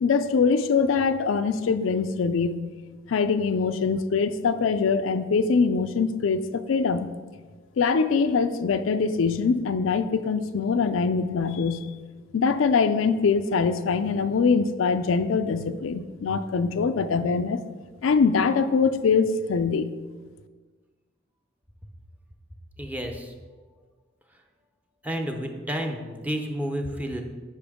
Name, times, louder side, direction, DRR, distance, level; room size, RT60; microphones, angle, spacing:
voice 1, 0.0-2.6 3.1-7.1 7.8-11.9 12.3-17.6 18.0-19.9, left 5 dB, 80° left, 10 dB, 0.4 m, -23 dB
voice 2, 22.8-23.3 25.0-27.2, equal, 10° right, 3 dB, 0.7 m, -30 dB
9.9 x 5.9 x 3.6 m, 1.4 s
head